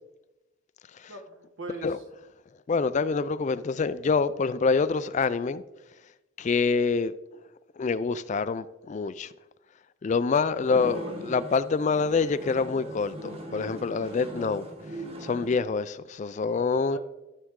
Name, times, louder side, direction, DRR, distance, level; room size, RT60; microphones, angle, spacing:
voice 1, 1.1-2.0 10.5-11.2 16.9-17.0, right 2 dB, 70° right, 1.7 m, -41 dB
voice 2, 2.7-5.6 6.4-7.1 7.8-9.3 10.0-14.7 15.2-17.0, left 4 dB, 35° left, 0.3 m, -26 dB
sound 1, 10.6-15.6, right 1 dB, 30° right, 1.2 m, -40 dB
13.0 x 7.5 x 3.7 m
head